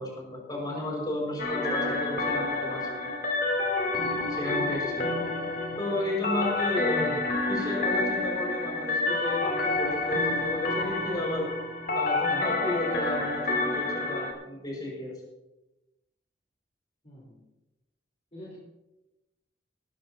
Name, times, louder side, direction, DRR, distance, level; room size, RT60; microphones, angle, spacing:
voice 1, 0.0-3.1 4.0-5.1 5.8-7.2 7.5-11.5 11.9-15.2, left 1 dB, 25° left, -2 dB, 5.9 m, -33 dB
sound 1, 1.4-14.3, left 2 dB, 55° left, 3.3 m, -29 dB
voice 2, 6.9-7.2 17.0-17.4 18.3-18.6, left 2 dB, 40° left, -5 dB, 4.1 m, -41 dB
18.5 x 15.5 x 2.9 m, 0.98 s
head